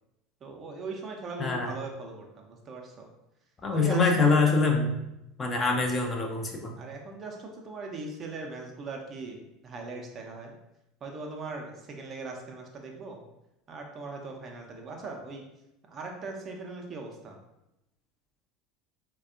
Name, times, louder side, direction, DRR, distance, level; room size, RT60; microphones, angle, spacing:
voice 1, 0.4-3.1 3.7-4.4 6.8-9.4 9.6-10.6 11.0-13.2 13.7-15.4 15.9-17.4, right 3 dB, 35° right, 2 dB, 0.5 m, -39 dB
voice 2, 1.4-1.7 3.6-5.0 5.4-6.7, left 3 dB, 25° left, 1 dB, 0.5 m, -24 dB
4.0 x 2.2 x 2.4 m, 0.89 s
figure-of-eight pair, 75°, 0 cm